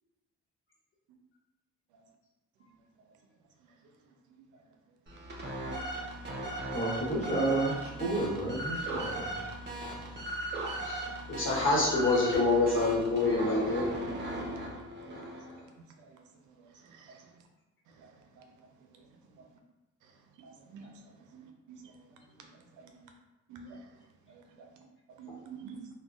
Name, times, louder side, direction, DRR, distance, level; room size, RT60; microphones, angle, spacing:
voice 1, 4.0-4.7 10.2-10.6 15.8-17.5 17.9-19.5 20.0-23.1 23.5-24.8 25.1-25.9, right 5 dB, 85° right, 3 dB, 0.5 m, -52 dB
sound 1, 5.1-15.6, right 1 dB, 35° right, 0.8 m, -38 dB
voice 2, 6.7-9.5, right 2 dB, 25° left, -5 dB, 1.2 m, -31 dB
voice 3, 11.3-13.9, left 3 dB, 45° left, -5 dB, 1.1 m, -26 dB
3.6 x 2.2 x 2.4 m, 1.1 s
cardioid pair, 90°, 30 cm